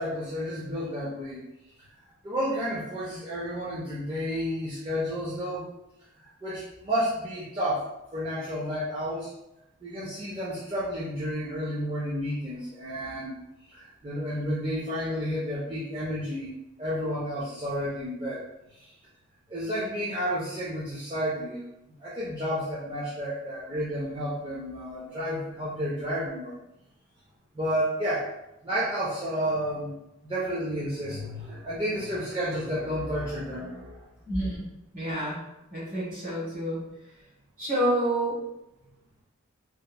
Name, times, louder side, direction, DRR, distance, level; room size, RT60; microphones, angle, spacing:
voice 1, 0.0-1.4 1.8-1.9 2.2-5.6 6.2-7.9 8.1-9.3 9.8-13.4 13.7-16.5 16.8-18.4 18.7-18.9 19.5-21.6 22.0-26.5 27.5-28.3 28.6-29.9 30.2-34.0, equal, 25° right, -8 dB, 0.4 m, -31 dB
voice 2, 34.3-35.4 35.7-36.8 37.6-38.4, right 1 dB, 40° right, -6 dB, 1.0 m, -28 dB
2.8 x 2.3 x 2.2 m, 0.91 s
head